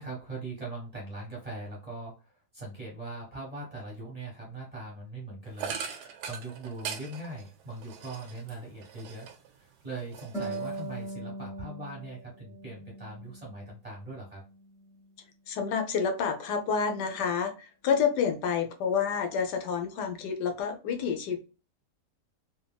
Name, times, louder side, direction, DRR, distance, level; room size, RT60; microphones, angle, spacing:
voice 1, 0.0-9.3 9.6-14.4, right 2 dB, 30° right, -3 dB, 0.8 m, -41 dB
sound 1, 5.6-9.6 9.9-11.1, right 7 dB, 80° right, 1.1 m, -41 dB
Harp, 10.3-13.7 14.1-15.1, right 2 dB, 5° right, 0.5 m, -40 dB
voice 2, 15.5-21.4, left 6 dB, 85° left, 5 dB, 1.3 m, -29 dB
3.4 x 2.3 x 2.2 m, 0.33 s
omnidirectional pair, 1.7 m